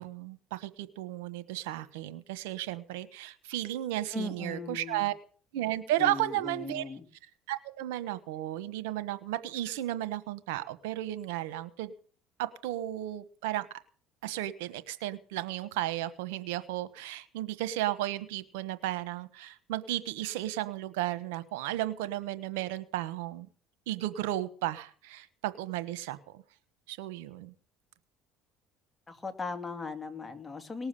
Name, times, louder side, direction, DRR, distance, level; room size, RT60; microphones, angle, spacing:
voice 1, 0.0-5.1 5.5-6.8 7.5-11.9 12.4-13.7 14.2-23.5 23.9-26.4 26.9-27.5, right 14 dB, 90° right, 13 dB, 1.2 m, -34 dB
voice 2, 4.1-5.1 6.0-7.1 29.1-30.9, left 4 dB, 20° left, 7 dB, 2.4 m, -38 dB
19.0 x 7.2 x 8.5 m, 0.43 s
supercardioid pair, 95°, 0 cm